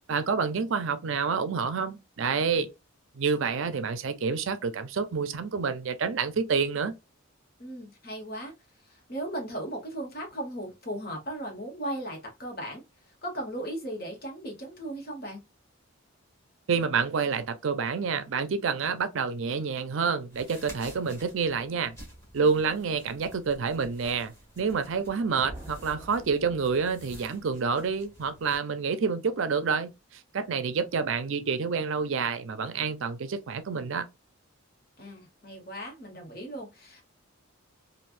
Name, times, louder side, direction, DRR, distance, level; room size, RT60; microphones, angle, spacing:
voice 1, 0.1-2.7 3.1-6.9 16.7-22.0 22.3-34.1, right 5 dB, 65° right, 0.5 m, -28 dB
voice 2, 7.6-8.5 8.9-12.8 13.2-15.4 35.0-37.0, right 1 dB, 45° left, 1.4 m, -37 dB
sound 1, 20.3-28.6, equal, 15° left, 1.7 m, -51 dB
sound 2, 25.4-27.3, right 1 dB, 15° right, 1.3 m, -46 dB
3.3 x 2.5 x 2.4 m
head